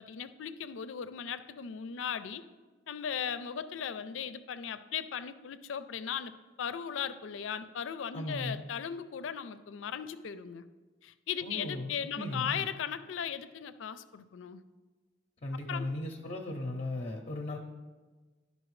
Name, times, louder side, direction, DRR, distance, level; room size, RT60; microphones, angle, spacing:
voice 1, 0.0-2.4 2.9-10.6 11.0-14.6 15.7-15.9, left 8 dB, 80° left, 13 dB, 0.4 m, -37 dB
voice 2, 8.1-8.6 11.4-12.6 15.4-17.6, left 1 dB, 35° left, 1 dB, 0.6 m, -37 dB
12.0 x 5.4 x 3.1 m, 1.3 s
head